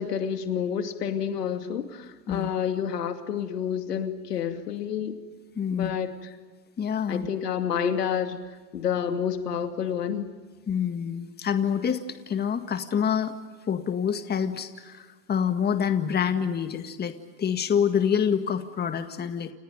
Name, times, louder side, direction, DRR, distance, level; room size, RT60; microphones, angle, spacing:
voice 1, 0.0-5.2 5.7-6.1 7.1-8.4 8.7-10.3, left 8 dB, 75° left, 7 dB, 2.7 m, -29 dB
voice 2, 5.6-5.9 6.8-7.3 10.7-13.3 13.7-19.5, left 7 dB, 20° left, 8 dB, 1.9 m, -27 dB
29.5 x 29.5 x 5.3 m, 1.4 s
hypercardioid pair, 100°, 48 cm